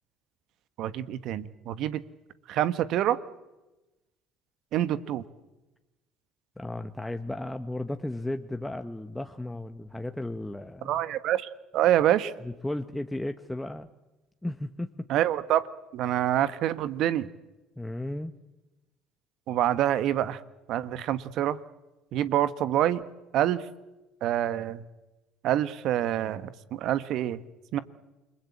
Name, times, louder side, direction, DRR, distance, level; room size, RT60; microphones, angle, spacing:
voice 1, 0.8-2.0 2.5-3.2 4.7-5.2 10.8-12.3 15.1-15.6 15.9-17.3 19.5-20.4 20.7-21.6 22.1-23.0 23.3-23.6 24.2-24.8 25.4-27.4 27.7-27.8, right 12 dB, 65° right, 14 dB, 1.4 m, -26 dB
voice 2, 6.6-11.0 12.4-13.9 14.4-15.1 17.8-18.3, left 1 dB, 10° left, 6 dB, 1.4 m, -34 dB
29.0 x 22.0 x 8.6 m, 1.0 s
hypercardioid pair, 65°, 0 cm